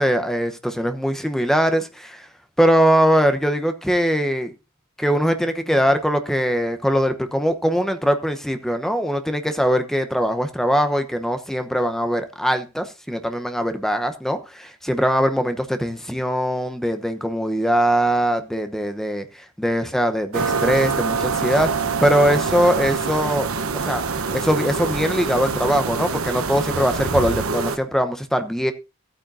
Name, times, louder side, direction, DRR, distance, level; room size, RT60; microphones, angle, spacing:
voice 1, 0.0-2.3 2.6-4.5 5.0-19.2 19.6-23.5 23.7-24.0 24.3-28.7, equal, ahead, 0.9 m, -21 dB
sound 1, 20.3-27.8, right 4 dB, 70° right, 1.0 m, -25 dB
15.0 x 8.9 x 2.7 m
head